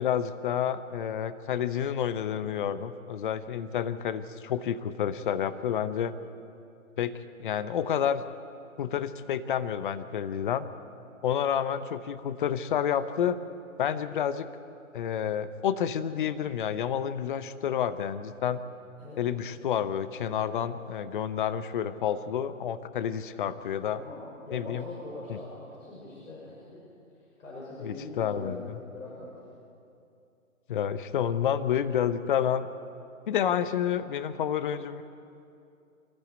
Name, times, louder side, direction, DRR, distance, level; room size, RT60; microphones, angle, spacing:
voice 1, 0.0-6.1 7.0-7.1 7.4-8.2 8.8-10.7 11.2-13.4 13.8-14.5 14.9-18.6 19.2-24.0 24.5-24.8 25.3-25.4 27.8-28.8 30.7-32.7 33.3-35.0, left 9 dB, 35° left, 13 dB, 0.9 m, -29 dB
voice 2, 19.0-19.5 23.8-26.9 27.4-29.4, left 2 dB, 70° left, -5 dB, 6.2 m, -42 dB
27.0 x 14.5 x 8.2 m, 2.6 s
figure-of-eight pair, 140°, 42 cm